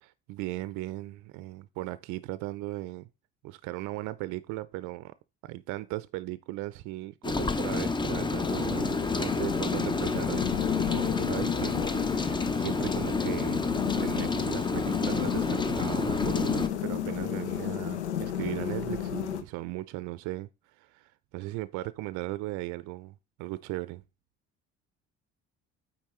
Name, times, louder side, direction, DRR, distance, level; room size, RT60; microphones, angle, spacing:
voice 1, 0.0-3.1 3.4-5.2 5.4-24.0, right 18 dB, 60° right, 0.5 m, -37 dB
Rain, 7.2-16.7, left 3 dB, 15° left, 0.6 m, -30 dB
sound 1, 8.4-19.4, left 10 dB, 90° left, 0.6 m, -33 dB
8.6 x 4.3 x 3.2 m
hypercardioid pair, 60°, 33 cm